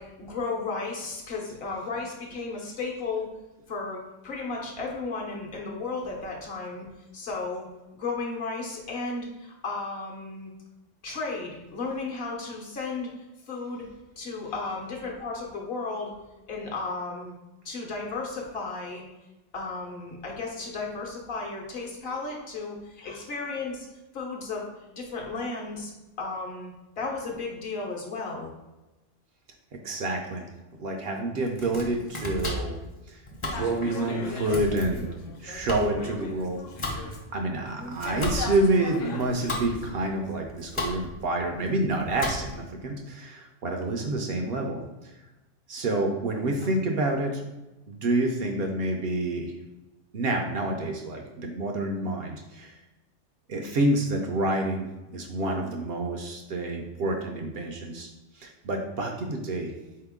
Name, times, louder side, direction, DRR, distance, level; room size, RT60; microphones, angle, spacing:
voice 1, 0.0-3.3 3.7-6.8 7.1-7.7 8.0-10.5 11.0-13.1 13.5-13.9 14.2-16.1 16.5-17.3 17.6-19.0 19.5-23.9 24.1-24.7 25.0-25.9 26.2-28.5 37.7-38.0 44.1-44.2, left 3 dB, 60° left, -1 dB, 0.9 m, -34 dB
voice 2, 29.8-30.5 30.8-32.8 33.1-35.1 35.4-36.6 36.9-37.0 37.3-45.2 45.7-47.4 47.9-49.5 50.1-52.7 53.5-54.9 55.1-59.7, right 2 dB, 65° right, 3 dB, 0.7 m, -28 dB
Domestic sounds home sounds, 31.4-42.7, left 1 dB, 30° left, 0.6 m, -36 dB
sound 1, 33.5-37.2 37.5-40.4, left 4 dB, 90° left, 1.0 m, -39 dB
4.2 x 2.9 x 3.5 m, 1.0 s
omnidirectional pair, 1.2 m